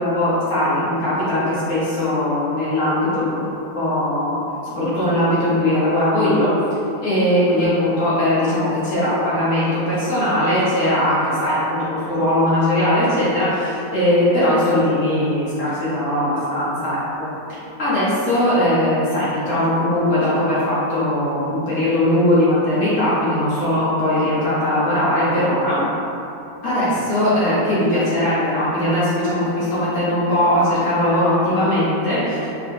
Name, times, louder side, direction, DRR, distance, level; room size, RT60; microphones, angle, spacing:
voice 1, 0.0-4.4 4.6-6.5 7.0-17.0 17.8-25.8 26.6-32.5, left 1 dB, 80° left, -11 dB, 2.0 m, -19 dB
4.6 x 2.3 x 4.7 m, 2.8 s
omnidirectional pair, 1.5 m